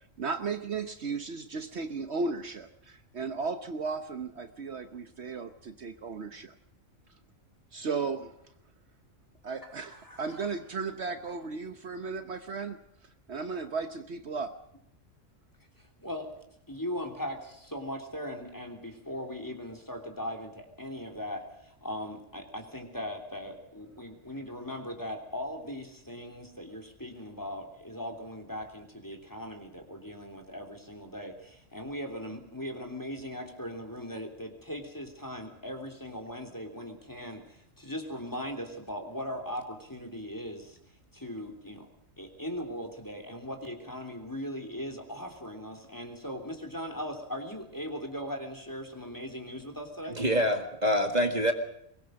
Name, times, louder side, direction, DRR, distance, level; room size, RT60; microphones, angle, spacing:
voice 1, 0.2-6.5 7.7-8.4 9.4-14.6, right 4 dB, 60° right, 8 dB, 1.2 m, -35 dB
voice 2, 9.8-10.4 16.0-16.3 16.7-40.8 41.1-41.9 42.2-50.2, equal, 15° left, 3 dB, 3.1 m, -39 dB
voice 3, 50.2-51.5, equal, 35° right, 5 dB, 1.9 m, -25 dB
23.0 x 20.5 x 6.4 m, 0.75 s
omnidirectional pair, 1.3 m